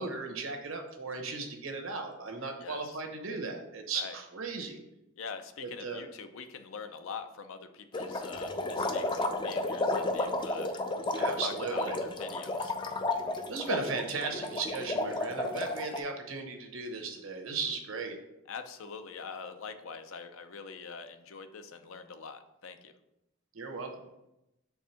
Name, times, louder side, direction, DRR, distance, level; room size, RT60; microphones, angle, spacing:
voice 1, 0.0-4.8 5.6-6.0 11.2-12.0 13.5-18.2 23.5-23.9, right 4 dB, 75° right, 4 dB, 1.0 m, -36 dB
voice 2, 2.6-3.0 3.9-4.2 5.2-10.7 11.1-12.7 18.5-22.9, left 5 dB, 75° left, 9 dB, 0.5 m, -44 dB
sound 1, 7.9-16.0, left 2 dB, 20° left, 0.4 m, -32 dB
4.7 x 3.6 x 5.6 m, 0.89 s
head